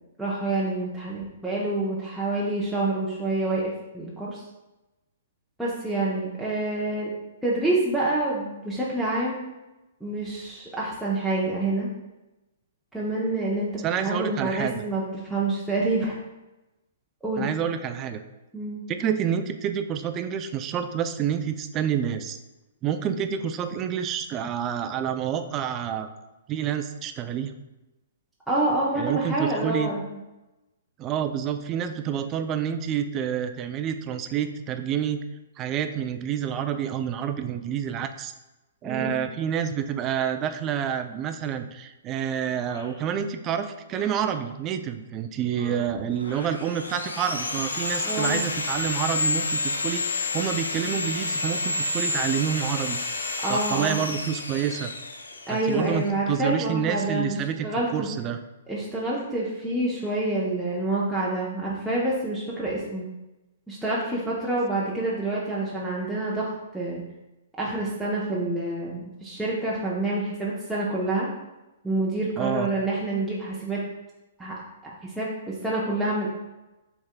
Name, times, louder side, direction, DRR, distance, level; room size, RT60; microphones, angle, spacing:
voice 1, 0.2-4.4 5.6-7.1 7.4-9.5 10.0-11.9 12.9-16.1 17.2-17.5 18.5-18.8 28.5-30.2 38.8-39.1 45.6-45.9 48.0-48.3 53.4-54.0 55.5-57.4 57.6-58.1 58.7-63.1 63.7-67.0 67.6-71.3 71.8-73.8 74.4-74.5 74.8-76.3, right 2 dB, ahead, -8 dB, 0.8 m, -27 dB
voice 2, 13.8-14.8 17.4-18.2 18.9-22.4 22.8-26.1 26.5-27.5 29.0-29.9 31.0-35.2 35.6-38.3 38.8-53.0 53.5-54.9 55.5-57.7 57.9-58.4 72.4-72.7, right 8 dB, 30° right, 8 dB, 0.4 m, -28 dB
sound 1, 42.6-43.0 43.8-44.4 45.4-46.6 47.3-48.4 48.9-49.5, left 2 dB, 65° left, 1.1 m, -47 dB
Sawing, 46.2-56.1, left 2 dB, 85° left, 0.5 m, -30 dB
6.3 x 3.6 x 2.2 m, 1.0 s
hypercardioid pair, 120°, 0 cm